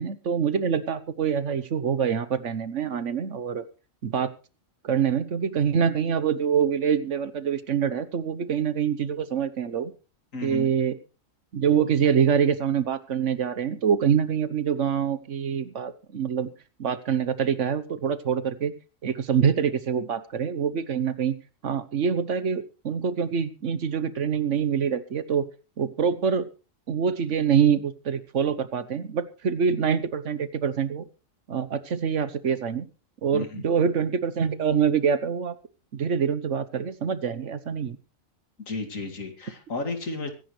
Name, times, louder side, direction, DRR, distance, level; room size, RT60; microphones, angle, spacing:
voice 1, 0.0-3.6 4.0-4.3 4.8-9.9 10.4-11.0 11.5-16.5 16.8-18.7 19.0-21.3 21.6-25.4 25.8-26.5 26.9-31.0 31.5-32.9 33.2-35.5 35.9-38.0, right 7 dB, 65° right, 14 dB, 1.3 m, -25 dB
voice 2, 10.3-10.7 33.3-33.6 38.6-40.3, left 3 dB, 70° left, 6 dB, 2.7 m, -33 dB
24.0 x 10.5 x 3.2 m, 0.33 s
omnidirectional pair, 1.4 m